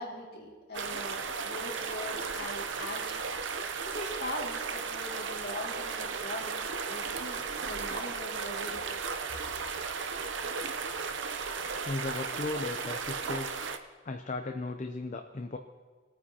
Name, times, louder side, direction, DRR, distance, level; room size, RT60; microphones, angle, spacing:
voice 1, 0.0-3.2 3.6-6.6 6.9-8.8, left 1 dB, 55° left, -2 dB, 2.3 m, -41 dB
sound 1, 0.7-13.8, right 5 dB, 90° right, 0.7 m, -35 dB
voice 2, 11.8-13.5 14.0-15.6, left 3 dB, 40° left, 5 dB, 0.6 m, -36 dB
20.5 x 9.3 x 2.9 m, 1.5 s
head